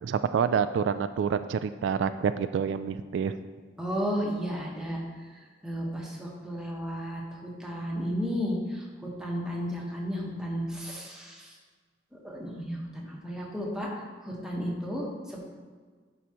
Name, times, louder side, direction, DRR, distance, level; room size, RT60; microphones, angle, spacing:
voice 1, 0.0-3.4, right 7 dB, 85° right, 11 dB, 0.3 m, -27 dB
voice 2, 3.8-5.0 5.6-11.5 12.2-13.9 14.2-15.4, equal, 5° right, -3 dB, 1.2 m, -33 dB
11.0 x 4.8 x 3.0 m, 1.5 s
head